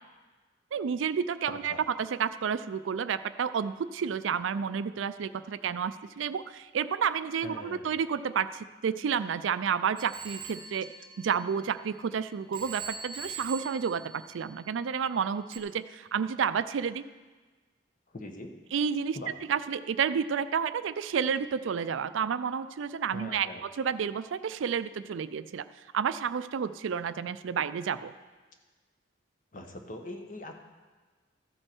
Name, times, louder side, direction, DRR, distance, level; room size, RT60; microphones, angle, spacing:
voice 1, 0.7-10.9 11.2-17.0 18.7-19.2 19.5-25.7 25.9-28.1, right 7 dB, 80° right, 13 dB, 0.4 m, -30 dB
voice 2, 1.5-1.8 7.4-7.9 18.1-18.6 19.1-19.3 23.1-23.6 29.5-30.6, left 1 dB, 45° left, 4 dB, 1.1 m, -42 dB
Telephone, 10.0-12.1 12.5-14.9 15.5-15.6, right 5 dB, 25° right, 0.9 m, -43 dB
14.0 x 7.7 x 4.5 m, 1.3 s
head